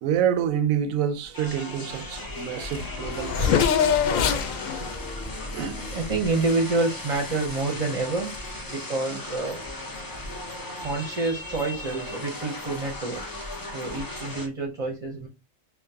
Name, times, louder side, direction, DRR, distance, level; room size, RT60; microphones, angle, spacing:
voice 1, 0.0-3.9 4.8-4.9 5.5-5.8 9.1-9.2, right 9 dB, 85° right, 1.0 m, -27 dB
sound 1, 1.3-14.5, left 1 dB, 30° left, 0.4 m, -37 dB
Race car auto racing / Accelerating revving vroom, 2.2-2.3 2.5-6.5, left 7 dB, 85° left, 1.0 m, -26 dB
voice 2, 5.9-8.3 8.7-9.6 10.8-13.5 13.7-15.3, right 3 dB, 35° right, 0.6 m, -28 dB
5.6 x 2.1 x 2.7 m
omnidirectional pair, 1.4 m